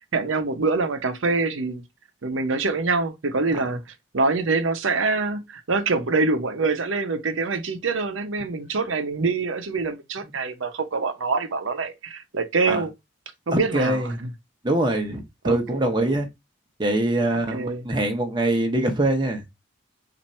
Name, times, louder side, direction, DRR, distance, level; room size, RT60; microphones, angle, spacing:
voice 1, 0.1-1.8 2.2-3.8 4.1-12.9 13.5-14.3 15.4-15.8 17.3-17.8, right 3 dB, 80° right, 0.7 m, -25 dB
voice 2, 13.5-14.1 14.6-16.3 16.8-19.4, right 1 dB, 25° right, 0.9 m, -23 dB
4.3 x 2.6 x 4.3 m
head